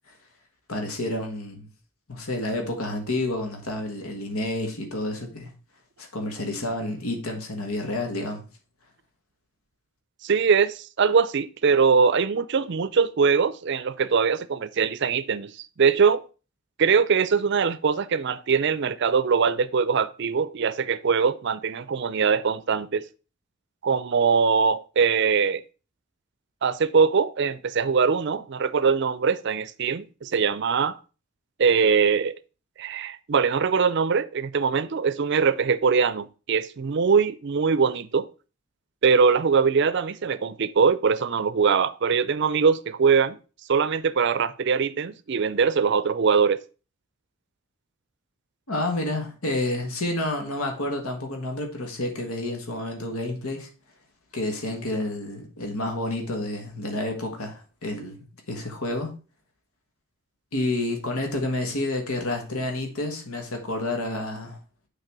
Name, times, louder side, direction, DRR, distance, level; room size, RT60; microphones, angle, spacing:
voice 1, 0.7-1.7 2.1-5.5 6.0-8.4 48.7-53.7 54.3-58.2 58.5-59.1 60.5-64.6, left 2 dB, 85° left, 1.6 m, -29 dB
voice 2, 10.2-15.5 15.8-16.2 16.8-23.0 23.8-25.6 26.6-31.0 31.6-32.4 32.8-38.3 39.0-43.4 43.7-46.6, right 5 dB, 55° right, 0.5 m, -22 dB
6.6 x 4.0 x 6.0 m
head